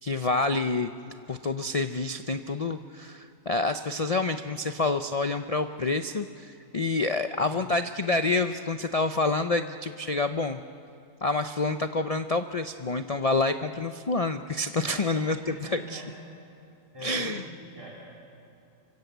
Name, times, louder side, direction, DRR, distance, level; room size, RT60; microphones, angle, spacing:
voice 1, 0.0-0.9 1.3-10.6 11.2-15.4 15.9-16.0 17.0-17.4, left 3 dB, 75° left, 9 dB, 0.3 m, -28 dB
voice 2, 15.4-16.1 16.9-17.4 17.7-17.9, equal, 15° right, -4 dB, 3.2 m, -41 dB
25.5 x 24.0 x 8.1 m, 2.6 s
omnidirectional pair, 1.6 m